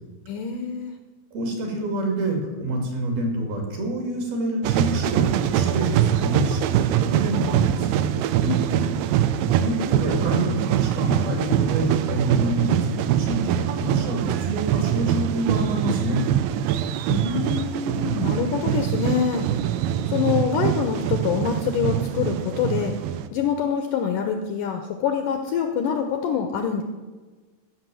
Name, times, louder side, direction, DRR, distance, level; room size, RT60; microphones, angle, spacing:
voice 1, 0.3-0.9 8.4-8.9 17.1-19.7 20.1-22.9 23.3-26.8, left 7 dB, 75° left, 6 dB, 2.0 m, -25 dB
voice 2, 1.3-8.0 9.6-16.2, right 1 dB, 70° right, 1 dB, 4.4 m, -27 dB
sound 1, 4.6-23.3, right 11 dB, 90° right, 2.0 m, -23 dB
15.0 x 6.2 x 7.6 m, 1.3 s
omnidirectional pair, 4.6 m